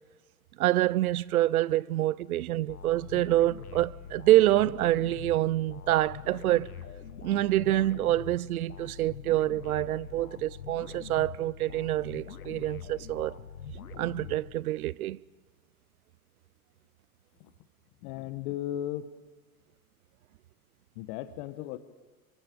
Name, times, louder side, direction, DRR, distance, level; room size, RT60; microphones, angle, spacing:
voice 1, 0.6-6.7 7.2-13.3 14.0-15.2, right 15 dB, 80° right, 0.6 m, -26 dB
sound 1, 2.7-15.0, left 8 dB, 85° left, 1.3 m, -44 dB
voice 2, 18.0-19.1 20.9-21.8, left 12 dB, 55° left, 1.4 m, -36 dB
26.5 x 23.5 x 5.2 m
hypercardioid pair, 95°, 43 cm